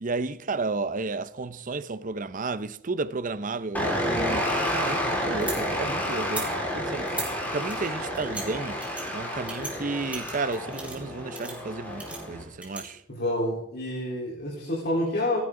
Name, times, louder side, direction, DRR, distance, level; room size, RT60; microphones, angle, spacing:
voice 1, 0.0-8.8 9.1-13.0, right 3 dB, 45° right, 0.7 m, -32 dB
sound 1, 3.7-12.4, equal, 10° left, 4.5 m, -30 dB
sound 2, 4.7-5.6 6.2-6.5 7.1-7.3 7.7-8.4 8.8-9.0 9.5-9.7 10.1-11.1 11.3-11.5 12.0-12.8, right 2 dB, 5° right, 4.2 m, -37 dB
voice 2, 13.1-15.4, left 1 dB, 55° left, 3.9 m, -28 dB
27.5 x 10.5 x 3.8 m
head